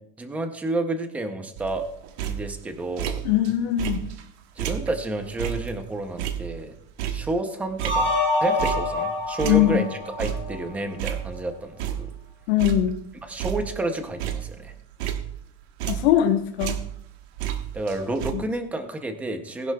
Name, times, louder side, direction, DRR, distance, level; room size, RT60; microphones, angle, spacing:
voice 1, 0.2-1.9 2.2-3.2 4.6-6.7 7.1-8.1 8.4-12.1 13.3-14.7 17.7-19.7, right 2 dB, 5° right, 6 dB, 0.5 m, -30 dB
sound 1, 1.6-3.5 3.8-9.1 9.4-11.5 11.8-12.3 12.6-16.3 16.6-18.3, right 10 dB, 80° right, 1.3 m, -32 dB
voice 2, 3.2-4.0 9.4-9.8 12.5-13.0 15.9-16.8 18.3-18.4, left 12 dB, 85° left, 3 dB, 1.1 m, -21 dB
sound 2, 7.8-10.9, left 2 dB, 40° right, 4.5 m, -26 dB
19.0 x 11.0 x 2.3 m, 0.72 s
cardioid pair, 180°, 32 cm